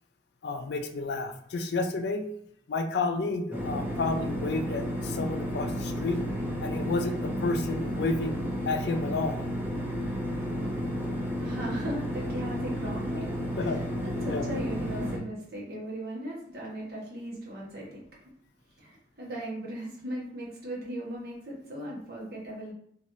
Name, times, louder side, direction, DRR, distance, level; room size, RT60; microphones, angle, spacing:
voice 1, 0.4-2.3 2.7-6.2 6.6-8.4 8.7-9.4 13.6-13.8 14.2-14.5, left 3 dB, 70° left, 6 dB, 0.4 m, -31 dB
sound 1, 3.5-15.2, equal, 10° right, 0.5 m, -32 dB
voice 2, 11.4-18.0 18.8-22.7, right 1 dB, 55° right, -4 dB, 1.1 m, -38 dB
3.0 x 2.5 x 2.6 m, 0.66 s
head